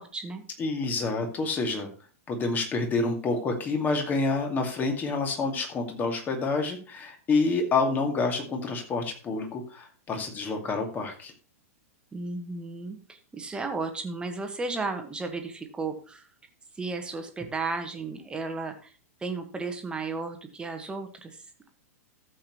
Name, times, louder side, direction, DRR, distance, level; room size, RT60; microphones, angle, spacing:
voice 1, 0.0-0.4 12.1-16.3 16.7-18.9 19.2-21.7, right 3 dB, 10° right, 6 dB, 1.6 m, -34 dB
voice 2, 0.6-1.9 2.3-11.3, left 3 dB, 20° left, 3 dB, 2.3 m, -28 dB
14.0 x 7.6 x 3.1 m, 0.38 s
figure-of-eight pair, 100°, 8 cm